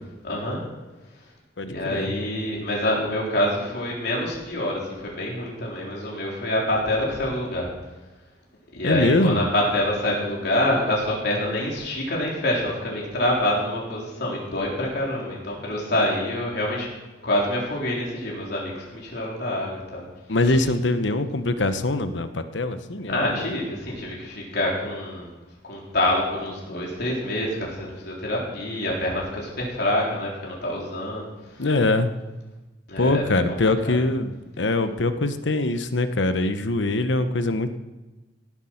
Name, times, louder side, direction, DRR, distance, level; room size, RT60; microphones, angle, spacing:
voice 1, 0.2-0.6 1.7-7.7 8.7-16.9 17.2-20.0 20.4-20.6 23.1-25.3 25.7-31.3 31.6-31.7 32.9-33.6 33.9-34.0, left 1 dB, 65° left, -3 dB, 3.8 m, -26 dB
voice 2, 1.6-2.1 8.8-9.4 20.3-23.4 31.6-32.1 33.0-37.7, left 2 dB, 90° left, 10 dB, 1.0 m, -23 dB
17.0 x 8.2 x 5.9 m, 1.2 s
head